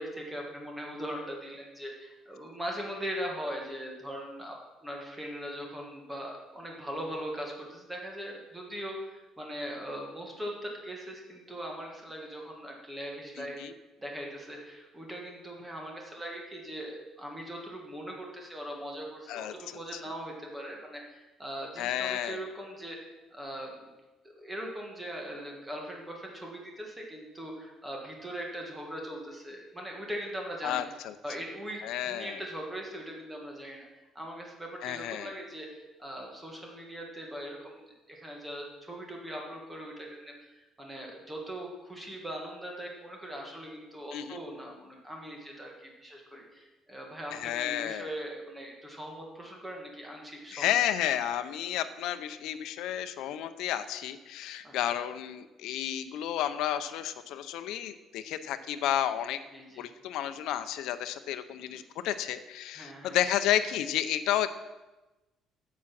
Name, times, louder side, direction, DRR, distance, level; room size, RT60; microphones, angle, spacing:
voice 1, 0.0-13.6 14.0-23.9 24.4-30.9 31.2-50.8 54.6-54.9 59.5-59.8 61.7-61.8 62.8-63.2, equal, 10° right, 0 dB, 1.6 m, -40 dB
voice 2, 13.4-13.7 19.3-19.5 19.9-20.0 21.8-22.4 30.6-31.1 31.8-32.4 34.8-35.3 44.1-44.4 47.3-48.1 50.5-59.4 59.8-64.5, left 11 dB, 70° left, 10 dB, 0.6 m, -31 dB
8.6 x 7.6 x 6.0 m, 1.1 s
cardioid pair, 175°, 0 cm